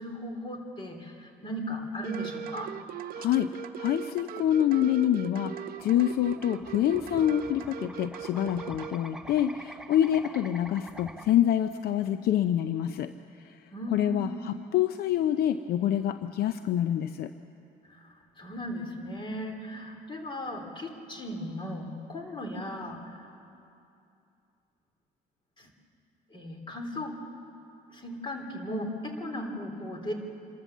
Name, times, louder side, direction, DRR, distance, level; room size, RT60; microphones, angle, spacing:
voice 1, 0.0-2.7 13.7-14.3 17.9-23.4 25.6-25.7 26.3-27.2 27.9-30.1, equal, 30° left, 3 dB, 3.4 m, -37 dB
sound 1, 2.0-8.9, right 9 dB, 60° right, 0.8 m, -39 dB
voice 2, 3.2-3.5 3.8-13.1 13.4-13.6 13.9-17.3, left 11 dB, 65° left, 10 dB, 0.6 m, -26 dB
sound 2, 5.8-11.3, right 1 dB, 5° right, 0.9 m, -46 dB
26.5 x 13.5 x 7.3 m, 2.6 s
cardioid pair, 110°, 17 cm